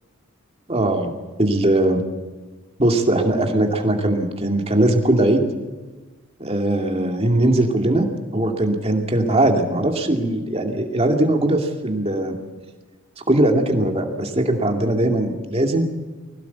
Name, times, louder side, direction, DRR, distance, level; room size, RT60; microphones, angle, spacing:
voice 1, 0.7-1.1 1.4-2.0 2.8-5.4 6.4-8.0 8.3-12.4 13.3-15.9, right 1 dB, 25° right, 3 dB, 2.4 m, -20 dB
21.0 x 17.5 x 8.2 m, 1.3 s
head